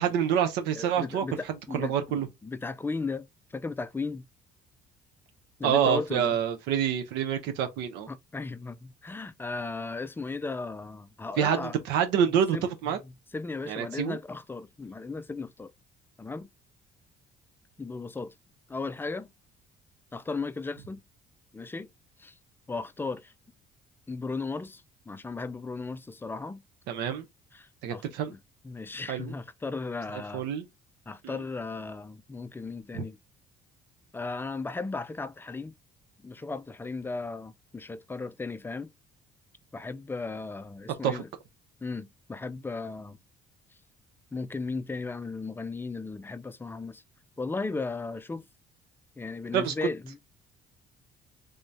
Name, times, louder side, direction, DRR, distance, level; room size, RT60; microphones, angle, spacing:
voice 1, 0.0-1.2 1.7-2.3 5.6-8.1 11.4-13.0 13.7-14.2 26.9-27.3 27.8-28.3 29.1-29.3 30.1-30.6 31.2-31.4 32.9-33.0 41.0-41.2 49.5-49.7, right 8 dB, 90° right, 0.6 m, -27 dB
voice 2, 0.8-4.2 5.6-6.3 8.1-11.8 12.5-12.7 13.3-15.7 16.2-16.5 17.8-18.3 18.7-19.3 20.1-21.0 21.5-21.9 22.2-22.3 22.7-23.3 24.1-26.6 27.5-28.4 28.6-30.4 31.1-33.2 34.1-35.7 36.2-38.9 39.7-41.3 41.8-43.2 44.3-47.0 47.4-48.4 49.2-50.2, left 3 dB, 15° left, 0.3 m, -36 dB
3.5 x 2.7 x 3.2 m
cardioid pair, 110°, 17 cm